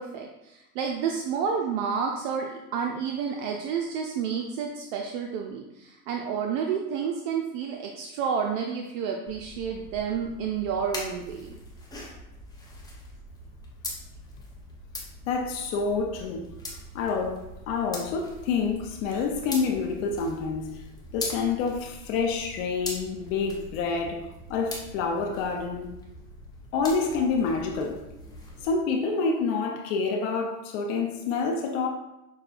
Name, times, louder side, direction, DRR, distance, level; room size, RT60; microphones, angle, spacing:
voice 1, 0.0-11.5, right 6 dB, 55° right, 0.5 m, -30 dB
sound 1, 9.3-28.7, left 1 dB, 10° left, 0.7 m, -42 dB
voice 2, 15.3-20.8 21.1-24.2 24.5-25.9 26.7-28.0 28.6-31.9, left 4 dB, 60° left, 0.6 m, -28 dB
6.2 x 2.2 x 2.4 m
supercardioid pair, 105°, 45 cm